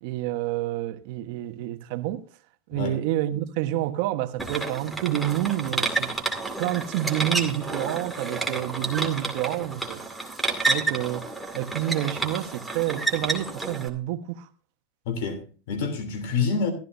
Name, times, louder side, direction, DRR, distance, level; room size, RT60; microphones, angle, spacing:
voice 1, 0.0-2.2 2.7-6.1 6.6-10.0 10.6-11.3 11.5-14.5, right 13 dB, 60° right, 1.2 m, -28 dB
sound 1, 4.4-13.9, right 3 dB, ahead, 2.3 m, -30 dB
voice 2, 15.1-16.7, left 5 dB, 65° left, 3.1 m, -27 dB
14.5 x 13.5 x 2.7 m
supercardioid pair, 140°, 0 cm